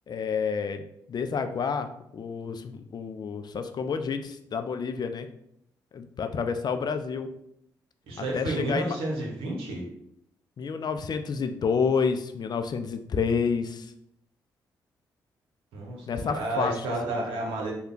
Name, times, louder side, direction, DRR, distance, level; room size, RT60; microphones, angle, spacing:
voice 1, 0.1-0.8 1.1-5.3 5.9-7.3 8.3-9.0 10.6-13.9 16.1-17.4, left 5 dB, 50° left, 8 dB, 0.4 m, -29 dB
voice 2, 8.1-9.9 15.7-17.7, right 2 dB, 80° right, -1 dB, 0.8 m, -31 dB
3.4 x 2.2 x 3.7 m, 0.75 s
hypercardioid pair, 45°, 9 cm